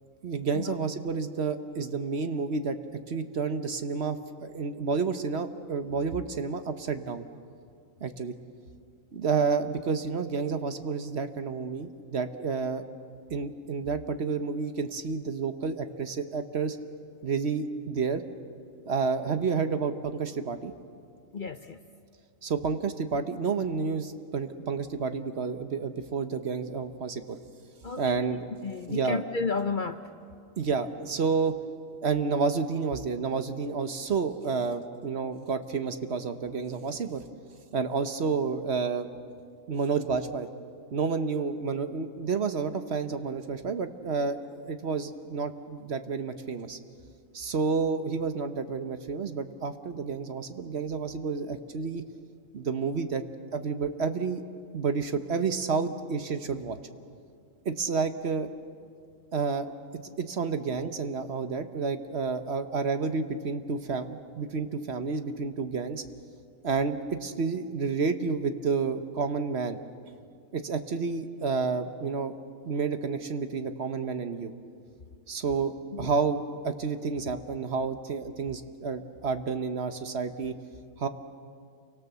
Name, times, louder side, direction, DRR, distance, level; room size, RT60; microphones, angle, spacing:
voice 1, 0.2-2.8 3.1-7.3 8.0-8.3 9.1-12.8 13.3-16.8 17.2-18.2 18.8-20.7 22.4-27.4 28.0-28.5 28.9-29.2 30.6-31.6 32.0-37.2 37.7-39.1 39.7-40.5 40.9-46.8 47.3-52.0 52.5-53.2 53.5-54.4 54.7-56.8 57.6-58.5 59.3-59.7 60.2-66.0 66.6-69.8 70.5-72.3 72.6-74.5 75.3-80.5 81.0-81.1, right 5 dB, 55° right, 1.2 m, -30 dB
voice 2, 21.3-21.8 27.8-28.4 28.6-30.0 75.9-76.1, left 4 dB, 45° left, 0.8 m, -32 dB
29.0 x 24.0 x 6.9 m
omnidirectional pair, 1.4 m